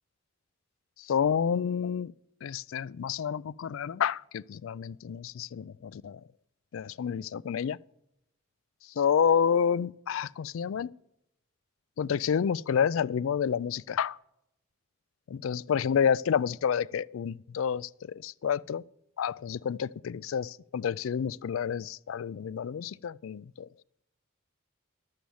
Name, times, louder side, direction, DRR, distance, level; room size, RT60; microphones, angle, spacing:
voice 1, 1.0-2.1 2.4-6.2 6.7-7.8 9.0-10.9 12.0-14.2 15.3-18.8 19.2-23.7, left 7 dB, 75° left, 0.3 m, -29 dB
11.5 x 7.7 x 7.0 m
head